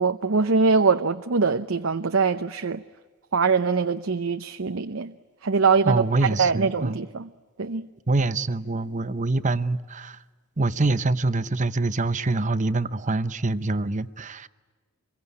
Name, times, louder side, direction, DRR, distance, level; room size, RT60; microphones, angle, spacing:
voice 1, 0.0-2.8 3.3-5.1 5.4-6.0 6.4-7.3 7.6-7.9, right 4 dB, 70° right, 0.7 m, -23 dB
voice 2, 5.8-7.0 8.1-10.2 10.6-14.5, right 2 dB, 35° right, 0.8 m, -25 dB
26.0 x 22.5 x 9.7 m
head